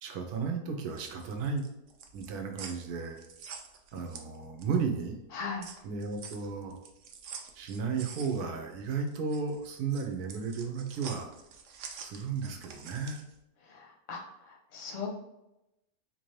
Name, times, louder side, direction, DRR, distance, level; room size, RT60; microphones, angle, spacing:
voice 1, 0.0-1.6 2.1-3.2 3.9-5.2 5.8-6.8 7.6-11.3 12.0-13.2, right 5 dB, 90° right, 4 dB, 1.2 m, -34 dB
sound 1, 0.7-4.9 5.2-13.3, right 6 dB, 65° right, 0.7 m, -47 dB
voice 2, 5.3-5.7 13.7-14.2 14.7-15.1, left 5 dB, 45° left, 0 dB, 0.5 m, -37 dB
3.9 x 2.6 x 3.1 m, 0.89 s
omnidirectional pair, 1.6 m